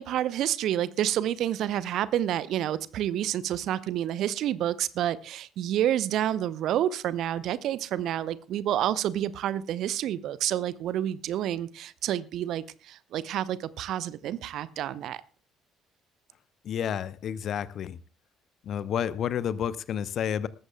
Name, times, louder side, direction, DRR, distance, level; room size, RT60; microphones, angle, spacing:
voice 1, 0.0-15.2, right 11 dB, 55° right, 18 dB, 0.7 m, -29 dB
voice 2, 16.6-18.0 18.6-20.5, left 9 dB, 50° left, 17 dB, 0.8 m, -30 dB
19.5 x 14.5 x 2.3 m, 0.35 s
figure-of-eight pair, 50°, 0 cm